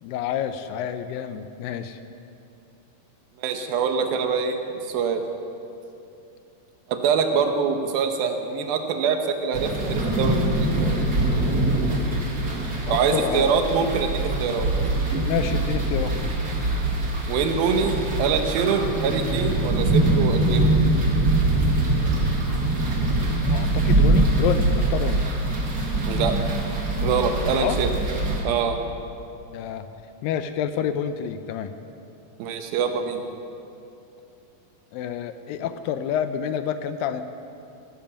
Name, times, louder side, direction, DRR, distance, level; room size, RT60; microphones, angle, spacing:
voice 1, 0.0-2.0 12.9-13.5 15.3-16.1 23.4-25.2 27.5-27.8 29.5-29.9 30.2-31.7 34.9-37.2, left 9 dB, 80° left, 10 dB, 2.2 m, -28 dB
voice 2, 3.4-4.6 4.9-5.2 6.9-10.7 12.9-14.7 17.3-20.7 26.0-26.4 27.0-27.9 28.4-28.8 32.4-33.3, right 6 dB, 80° right, 5 dB, 2.9 m, -24 dB
sound 1, 9.5-28.4, right 2 dB, 35° right, 1.7 m, -23 dB
16.5 x 10.5 x 7.1 m, 2.8 s
omnidirectional pair, 4.3 m